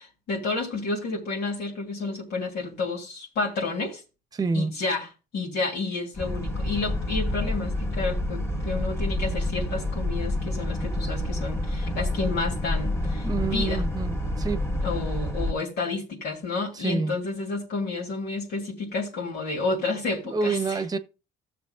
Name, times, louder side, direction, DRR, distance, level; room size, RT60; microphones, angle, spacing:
voice 1, 0.0-4.0 4.5-13.8 14.8-20.8, left 3 dB, 75° left, 3.0 m, -30 dB
voice 2, 4.3-4.7 13.2-14.6 16.7-17.2 20.2-21.0, right 4 dB, 20° right, 1.0 m, -28 dB
Boat Water vehicle, 6.1-15.5, left 1 dB, 15° left, 2.3 m, -28 dB
16.0 x 6.9 x 2.4 m
cardioid pair, 110°, 17 cm